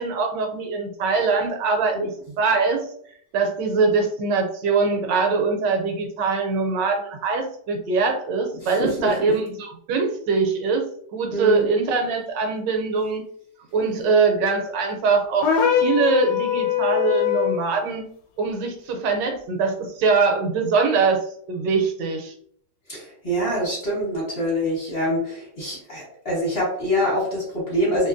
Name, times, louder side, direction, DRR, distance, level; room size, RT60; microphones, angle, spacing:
voice 1, 0.0-2.9 3.3-13.2 13.7-18.1 18.4-22.3, right 4 dB, 80° right, 4 dB, 1.2 m, -23 dB
voice 2, 8.6-9.3 11.3-11.6 22.9-28.1, equal, 35° left, -6 dB, 1.2 m, -25 dB
sound 1, 15.4-17.6, left 9 dB, 75° left, 1.1 m, -21 dB
2.8 x 2.8 x 2.5 m, 0.64 s
omnidirectional pair, 2.0 m